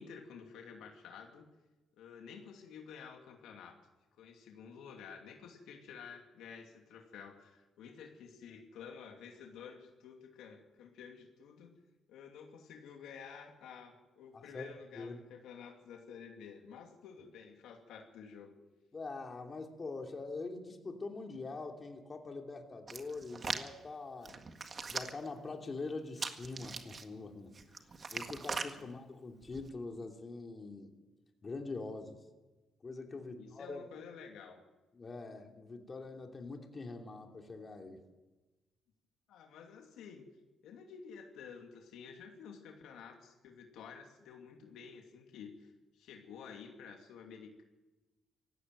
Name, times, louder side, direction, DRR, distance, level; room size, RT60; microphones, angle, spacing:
voice 1, 0.0-1.5 2.0-3.8 4.2-11.7 12.1-18.5 28.8-28.9 33.2-34.6 39.3-40.2 40.6-47.6, left 6 dB, 85° left, 3 dB, 2.7 m, -51 dB
voice 2, 14.3-15.2 18.9-24.4 24.9-27.5 28.1-30.9 31.4-32.2 32.8-33.8 34.9-38.0, left 3 dB, 35° left, 3 dB, 3.0 m, -44 dB
Hands, 22.9-23.7 24.3-25.3 26.2-27.0 27.6-28.7 29.4-29.7, right 4 dB, 40° right, 1.7 m, -40 dB
17.5 x 16.0 x 9.3 m, 1.1 s
cardioid pair, 90°, 0 cm